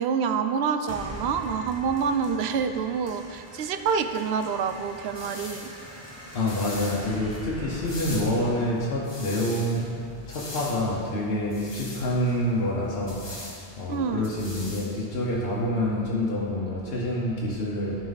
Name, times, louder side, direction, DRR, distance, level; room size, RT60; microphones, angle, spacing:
voice 1, 0.0-5.7 13.9-14.3, right 6 dB, 80° right, 8 dB, 0.8 m, -27 dB
sound 1, 0.9-9.9, equal, 15° right, 0.9 m, -42 dB
sound 2, 4.7-15.7, left 1 dB, 25° left, 1.0 m, -43 dB
voice 2, 6.3-18.1, left 1 dB, 70° left, -5 dB, 1.2 m, -27 dB
13.0 x 5.1 x 4.0 m, 2.4 s
omnidirectional pair, 1.1 m